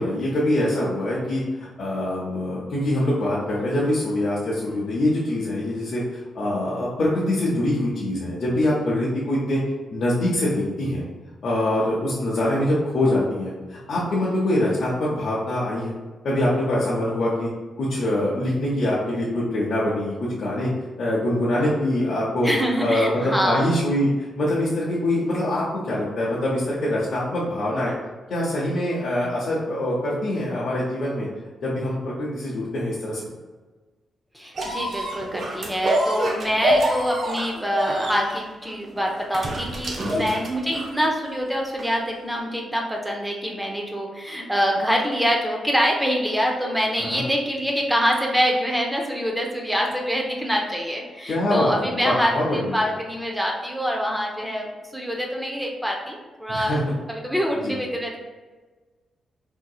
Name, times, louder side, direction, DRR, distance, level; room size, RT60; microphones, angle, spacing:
voice 1, 0.0-9.6 9.9-11.0 11.4-15.9 16.2-17.5 17.8-20.7 21.0-22.5 22.8-27.9 28.3-31.3 31.6-33.2 40.0-40.3 47.0-47.2 51.3-52.8 56.5-56.8 57.6-57.7, left 1 dB, 65° left, -7 dB, 0.8 m, -24 dB
voice 2, 22.4-23.7 34.3-56.8 57.1-58.2, equal, 5° right, 0 dB, 0.6 m, -25 dB
sound 1, 34.6-41.0 41.8-41.9, right 1 dB, 55° right, 0.6 m, -26 dB
3.6 x 2.8 x 2.3 m, 1.3 s
cardioid pair, 85°, 0 cm